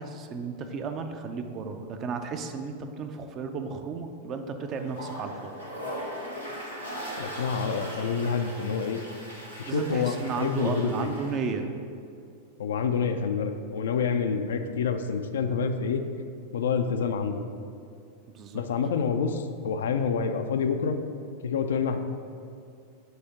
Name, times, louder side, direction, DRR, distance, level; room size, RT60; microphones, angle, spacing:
voice 1, 0.0-5.6 9.7-11.7 18.3-18.6, right 5 dB, 30° right, 6 dB, 0.5 m, -33 dB
Toilet flush, 4.7-11.5, equal, 85° right, 1.2 m, -39 dB
voice 2, 7.2-9.0 9.6-11.1 12.6-16.0 16.5-17.4 18.5-21.0 21.4-22.0, left 6 dB, 65° left, 7 dB, 0.4 m, -27 dB
7.8 x 2.8 x 5.8 m, 2.4 s
figure-of-eight pair, 90°, 0 cm